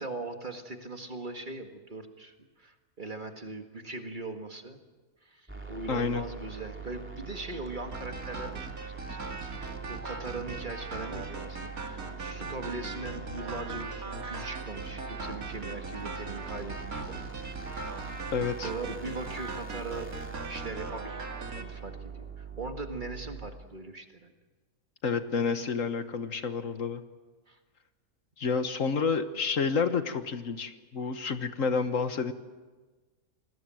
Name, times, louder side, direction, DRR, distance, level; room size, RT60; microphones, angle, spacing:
voice 1, 0.0-4.8 5.2-17.3 18.6-20.1 20.5-24.3 27.5-27.6, right 3 dB, 35° right, 5 dB, 2.0 m, -40 dB
sound 1, 5.5-23.5, right 6 dB, 10° right, 2.8 m, -43 dB
voice 2, 5.9-6.2 18.3-18.7 25.0-27.0 28.4-32.3, left 5 dB, 65° left, 9 dB, 1.6 m, -29 dB
sound 2, 6.8-19.0 19.3-19.4, left 2 dB, 85° left, 3.8 m, -55 dB
sound 3, 7.9-21.6, right 3 dB, 85° right, 2.6 m, -40 dB
27.5 x 20.5 x 7.7 m, 1.3 s
omnidirectional pair, 1.5 m